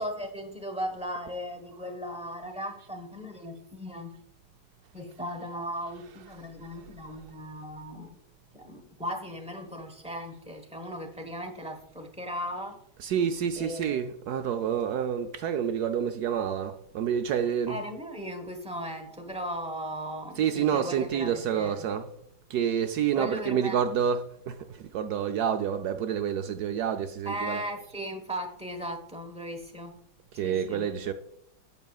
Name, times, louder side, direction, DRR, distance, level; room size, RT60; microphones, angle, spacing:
voice 1, 0.0-4.1 4.9-8.1 8.5-12.8 13.6-14.1 17.7-21.9 23.1-23.8 27.2-29.9 30.3-30.9, equal, 5° right, 0.7 m, -37 dB
voice 2, 13.0-17.8 20.4-22.1 22.5-27.6 30.3-31.1, right 8 dB, 70° right, 1.0 m, -28 dB
11.0 x 7.9 x 2.3 m
omnidirectional pair, 2.0 m